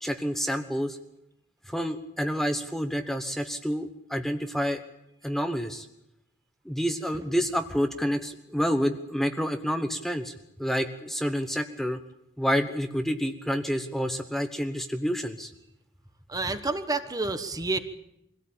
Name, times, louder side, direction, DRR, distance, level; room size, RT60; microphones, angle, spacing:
voice 1, 0.0-1.0 1.7-4.8 5.2-5.9 6.6-12.0 12.4-15.5, equal, ahead, 6 dB, 1.1 m, -28 dB
voice 2, 16.3-17.8, right 3 dB, 20° right, 9 dB, 1.3 m, -29 dB
23.5 x 17.0 x 8.8 m, 0.82 s
head